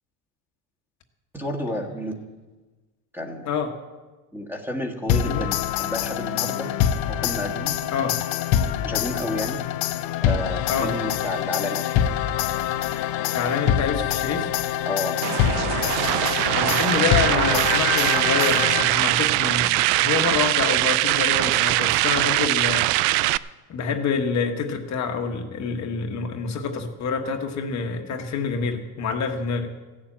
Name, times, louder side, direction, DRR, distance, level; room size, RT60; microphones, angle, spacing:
voice 1, 1.3-2.1 3.1-3.5 4.3-6.7 7.1-7.8 8.8-9.6 10.2-11.9 14.9-15.2, left 1 dB, 5° right, 1 dB, 1.7 m, -30 dB
sound 1, 5.1-19.2, left 10 dB, 65° left, 0.8 m, -25 dB
voice 2, 13.3-14.5 16.5-23.4 23.7-29.7, left 5 dB, 45° left, 4 dB, 1.3 m, -27 dB
sound 2, 15.2-23.4, right 18 dB, 80° right, 0.5 m, -22 dB
15.0 x 7.3 x 8.7 m, 1.2 s
cardioid pair, 130°, 39 cm